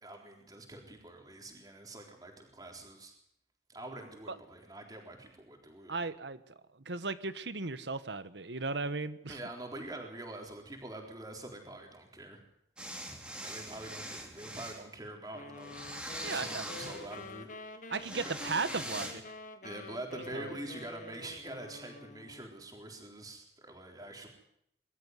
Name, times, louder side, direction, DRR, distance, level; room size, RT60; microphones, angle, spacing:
voice 1, 0.0-3.1 3.7-5.9 9.3-12.4 13.4-15.9 16.3-17.8 18.2-18.3 19.6-24.3, right 1 dB, 20° right, 2 dB, 3.9 m, -45 dB
voice 2, 5.9-6.4 6.7-9.4 16.2-16.9 17.9-19.2 20.3-20.5, right 3 dB, 85° right, 13 dB, 1.3 m, -36 dB
sound 1, 12.8-14.8 15.6-17.3 18.0-19.1, right 1 dB, 5° right, 2.9 m, -42 dB
sound 2, 15.3-22.5, left 3 dB, 45° left, 1.4 m, -48 dB
22.5 x 13.5 x 9.5 m, 0.73 s
head